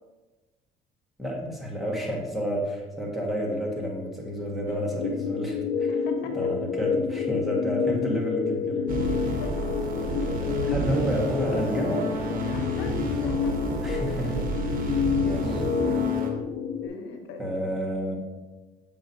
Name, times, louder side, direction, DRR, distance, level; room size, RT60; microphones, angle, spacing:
voice 1, 1.2-5.9 6.3-9.4 10.2-12.5 13.8-14.4 14.8-15.6 17.4-18.2, equal, ahead, -3 dB, 1.5 m, -30 dB
voice 2, 4.7-5.0 5.9-6.5 9.4-9.9 12.5-13.7 16.8-17.7, left 3 dB, 85° left, 4 dB, 1.0 m, -41 dB
sound 1, 5.0-16.9, left 6 dB, 65° left, 0.4 m, -28 dB
sound 2, 8.9-16.3, right 2 dB, 55° right, 1.1 m, -31 dB
6.8 x 6.0 x 2.7 m, 1.2 s
cardioid pair, 110°, 17 cm